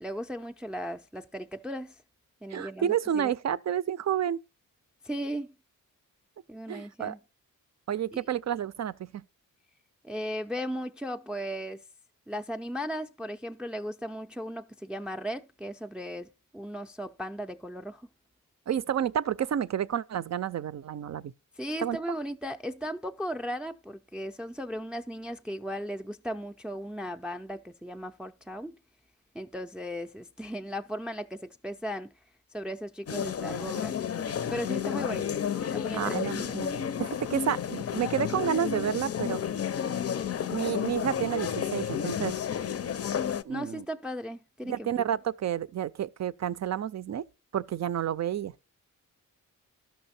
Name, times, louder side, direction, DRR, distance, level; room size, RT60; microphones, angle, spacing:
voice 1, 0.0-2.0 2.4-3.3 5.0-5.5 6.5-7.2 8.1-8.2 10.0-11.8 12.3-16.3 16.5-18.0 21.6-28.8 29.3-32.1 32.5-34.1 34.5-35.4 35.7-36.6 43.5-45.1, equal, 5° right, 0.5 m, -36 dB
voice 2, 2.5-4.4 6.7-7.2 7.9-9.2 18.7-21.3 21.8-22.2 35.9-39.4 40.5-42.3 43.4-43.9 44.6-47.2 47.5-48.5, right 9 dB, 55° right, 0.5 m, -30 dB
sound 1, 33.1-43.4, left 8 dB, 45° left, 0.5 m, -31 dB
12.0 x 6.1 x 4.2 m
wide cardioid pair, 115°, 33 cm